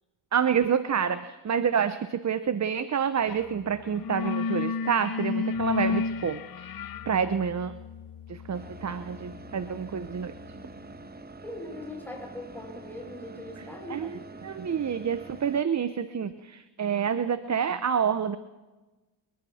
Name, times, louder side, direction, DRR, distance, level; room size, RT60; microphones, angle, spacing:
voice 1, 0.3-6.7 7.1-7.8 8.3-10.3 13.6-13.7 13.9-14.1 14.4-18.4, right 7 dB, 35° right, 12 dB, 0.9 m, -28 dB
sound 1, 3.3-3.5 3.8-10.4, left 5 dB, 45° left, 0.9 m, -33 dB
sound 2, 8.5-15.6, right 3 dB, 20° right, 1.2 m, -45 dB
voice 2, 11.4-14.2, left 1 dB, 5° left, -1 dB, 7.3 m, -40 dB
26.5 x 22.5 x 4.3 m, 1.2 s
cardioid pair, 90°, 47 cm